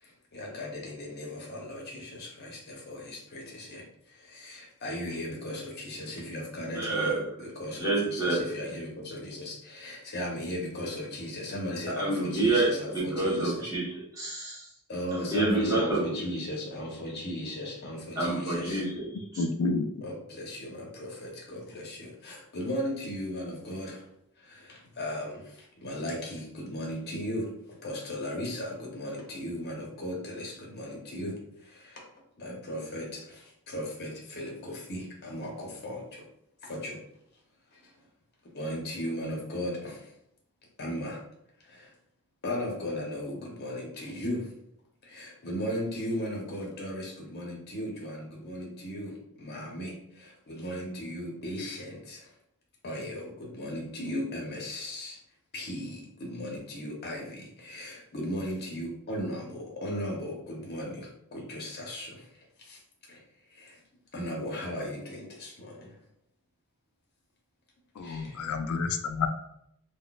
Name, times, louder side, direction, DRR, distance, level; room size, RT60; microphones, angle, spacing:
voice 1, 0.0-13.7 14.9-18.8 20.0-24.0 24.4-32.0 32.4-36.2 36.6-37.0 37.7-37.9 38.5-40.1 40.8-41.2 41.6-41.9 42.4-44.5 45.0-52.3 52.8-55.2 55.5-62.3 62.6-62.8 63.1-63.2 63.5-63.8 64.1-66.0 68.0-68.4, left 1 dB, 50° left, -2 dB, 0.8 m, -37 dB
voice 2, 6.7-7.3 7.8-8.5 11.9-14.6 15.2-16.1 18.2-19.4, right 2 dB, 15° right, -7 dB, 1.0 m, -28 dB
voice 3, 19.4-19.9 68.0-69.3, left 4 dB, 70° left, 7 dB, 0.4 m, -29 dB
3.8 x 2.1 x 2.3 m, 0.74 s
head